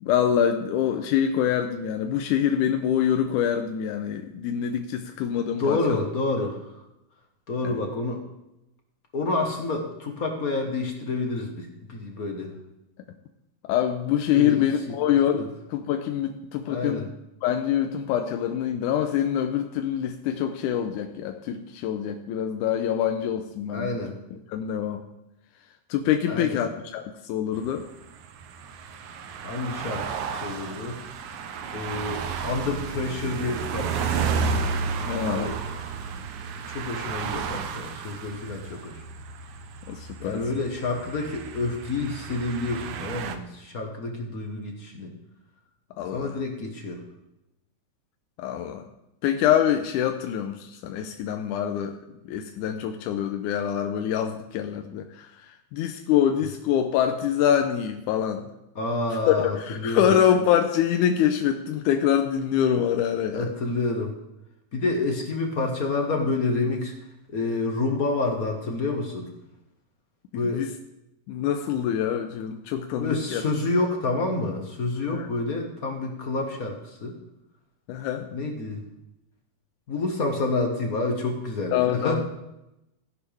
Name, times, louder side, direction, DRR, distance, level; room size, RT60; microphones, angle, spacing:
voice 1, 0.0-6.0 7.6-7.8 13.6-15.4 15.7-17.1 17.4-23.9 24.3-25.0 25.9-27.9 35.0-35.5 39.9-40.4 46.0-46.3 48.4-48.8 49.2-52.0 52.3-58.5 59.3-63.5 70.5-70.7 71.3-73.4 75.1-75.3 77.9-78.3 81.7-82.2, left 9 dB, 90° left, 6 dB, 2.2 m, -25 dB
voice 2, 5.4-6.8 7.5-8.2 9.1-12.5 14.3-14.9 15.4-15.5 16.7-17.1 23.7-24.2 26.3-26.6 29.4-31.0 31.7-34.4 35.2-35.6 36.7-39.0 40.2-45.1 46.0-47.0 58.7-60.1 63.3-64.1 64.7-66.9 67.3-69.3 70.3-70.6 73.0-77.2 78.3-78.8 79.9-82.2, left 3 dB, 50° left, 2 dB, 1.1 m, -28 dB
sound 1, 27.5-43.4, right 5 dB, 75° right, 2.2 m, -32 dB
15.5 x 11.0 x 3.4 m, 0.90 s
omnidirectional pair, 3.5 m